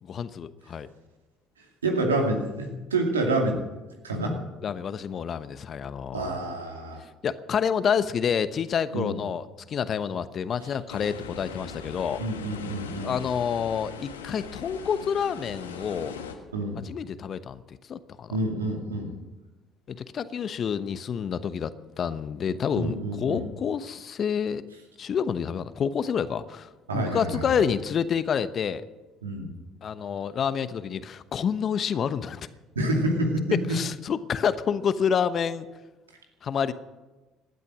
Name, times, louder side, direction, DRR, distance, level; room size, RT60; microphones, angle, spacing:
voice 1, 0.0-0.9 4.6-6.4 7.2-12.2 13.0-16.2 16.8-18.3 19.9-24.6 25.0-28.8 29.8-32.4 33.5-35.7 36.4-36.7, left 7 dB, 45° left, 13 dB, 1.0 m, -28 dB
voice 2, 1.8-3.6 4.0-4.4 6.1-7.0 8.9-9.1 12.2-13.1 16.5-16.8 18.3-19.1 22.8-23.5 26.9-27.5 29.2-29.5 32.8-33.5, right 2 dB, 90° right, 2 dB, 2.4 m, -27 dB
sound 1, 10.9-16.4, left 6 dB, 90° left, 1.6 m, -40 dB
18.5 x 12.5 x 6.2 m, 1.2 s
hypercardioid pair, 55°, 0 cm